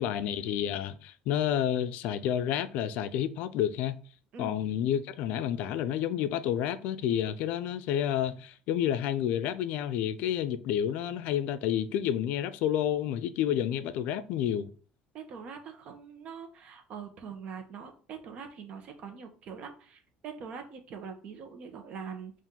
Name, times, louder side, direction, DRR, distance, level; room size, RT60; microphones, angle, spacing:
voice 1, 0.0-4.0 4.4-14.7, left 10 dB, 70° left, 0.3 m, -30 dB
voice 2, 15.1-22.3, right 6 dB, 50° right, 0.8 m, -43 dB
3.7 x 2.5 x 4.3 m
cardioid pair, 125°, 3 cm